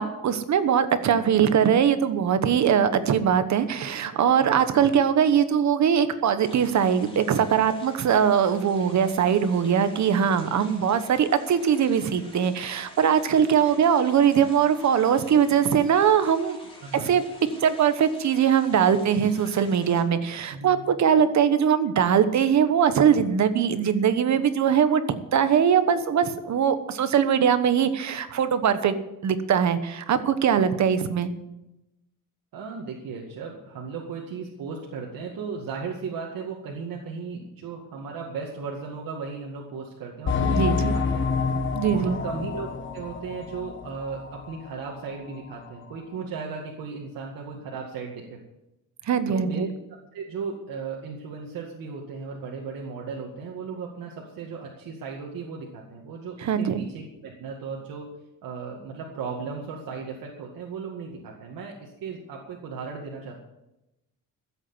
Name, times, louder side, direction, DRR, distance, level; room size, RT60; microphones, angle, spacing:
voice 1, 0.0-16.6 16.9-17.2 17.6-25.0 25.3-28.9 29.2-31.3 40.5-40.9 41.7-42.2 49.1-49.7 56.4-56.8, right 8 dB, 55° right, 11 dB, 1.2 m, -21 dB
sound 1, 6.4-20.0, left 1 dB, 15° left, 4.0 m, -48 dB
voice 2, 16.8-17.1 20.5-20.8 32.5-41.3 41.9-48.4 49.3-49.7 50.1-58.1 58.4-63.4, right 5 dB, 90° right, -1 dB, 2.1 m, -36 dB
sound 2, 40.3-44.5 44.9-45.0 45.5-45.6, left 5 dB, 35° left, 1.4 m, -28 dB
14.0 x 8.2 x 7.9 m, 0.91 s
cardioid pair, 155°, 33 cm